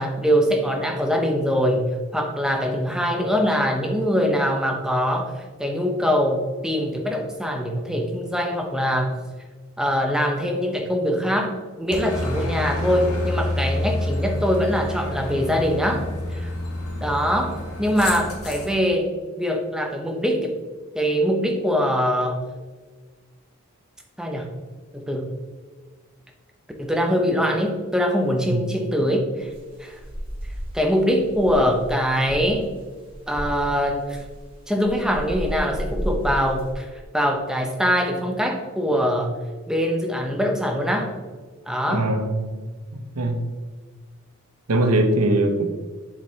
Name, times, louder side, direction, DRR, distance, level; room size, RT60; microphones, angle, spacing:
voice 1, 0.0-5.3 5.6-9.2 9.8-16.0 16.3-16.5 17.0-19.1 19.4-20.6 20.9-22.4 24.2-24.5 24.9-25.3 26.8-29.5 29.8-30.0 30.7-32.7 33.3-34.2 34.7-36.9 37.1-39.3 39.7-41.1 41.7-42.1, equal, 5° right, 2 dB, 0.7 m, -23 dB
Aircraft, 11.9-18.7, left 1 dB, 80° left, 1.3 m, -28 dB
sound 1, 29.4-30.8 31.2-32.6 33.1-34.4 34.8-36.7, equal, 25° right, 1.4 m, -33 dB
voice 2, 41.9-42.5 42.9-43.4 44.7-45.6, right 1 dB, 85° right, 6 dB, 0.8 m, -21 dB
7.5 x 5.0 x 2.8 m, 1.4 s
head